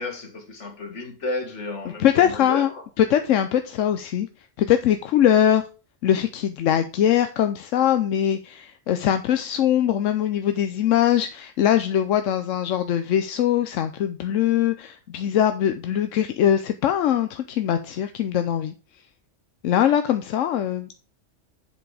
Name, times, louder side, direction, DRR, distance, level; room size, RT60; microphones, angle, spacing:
voice 1, 0.0-2.8, left 2 dB, 70° left, 2.1 m, -32 dB
voice 2, 2.0-2.7 3.0-4.3 4.6-5.6 6.0-18.7 19.6-20.9, left 10 dB, 90° left, 1.0 m, -22 dB
7.7 x 5.6 x 4.8 m
omnidirectional pair, 1.3 m